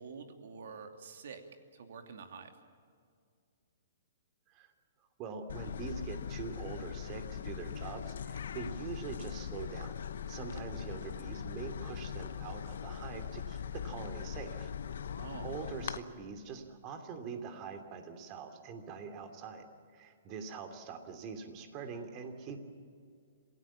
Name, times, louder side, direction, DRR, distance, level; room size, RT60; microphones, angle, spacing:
voice 1, 0.0-1.4 1.7-2.5 15.1-15.5, right 5 dB, 65° right, 5 dB, 2.8 m, -47 dB
voice 2, 5.2-10.0 10.3-14.7 15.4-22.6, right 5 dB, 35° right, 6 dB, 2.9 m, -44 dB
sound 1, 5.5-16.0, left 8 dB, 70° left, 1.0 m, -41 dB
27.0 x 17.0 x 7.3 m, 2.2 s
hypercardioid pair, 130°, 0 cm